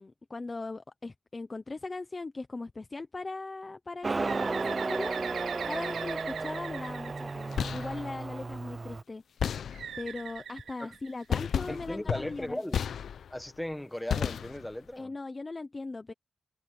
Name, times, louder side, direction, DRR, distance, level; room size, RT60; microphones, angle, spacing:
voice 1, 0.0-9.2 10.0-12.6 15.0-16.1, left 3 dB, 25° left, 0.8 m, -39 dB
Motorcycle, 4.0-9.0, right 3 dB, 25° right, 0.5 m, -34 dB
Bird, 4.2-8.0 9.7-11.5, right 8 dB, 90° right, 3.1 m, -41 dB
sound 1, 7.4-8.1 9.4-10.1 11.3-13.5 14.1-14.9, left 8 dB, 70° left, 0.6 m, -33 dB
voice 2, 11.7-12.8 13.3-15.1, left 1 dB, 5° left, 1.3 m, -37 dB
wide cardioid pair, 155°, 0 cm